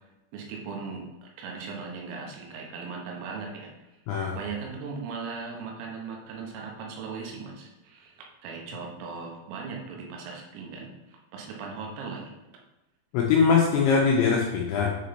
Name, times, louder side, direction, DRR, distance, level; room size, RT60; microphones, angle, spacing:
voice 1, 0.3-3.7 4.4-12.3, right 5 dB, 85° right, 0 dB, 3.7 m, -38 dB
voice 2, 13.1-14.9, left 5 dB, 85° left, -2 dB, 2.6 m, -22 dB
8.3 x 4.0 x 3.2 m, 0.99 s
omnidirectional pair, 5.9 m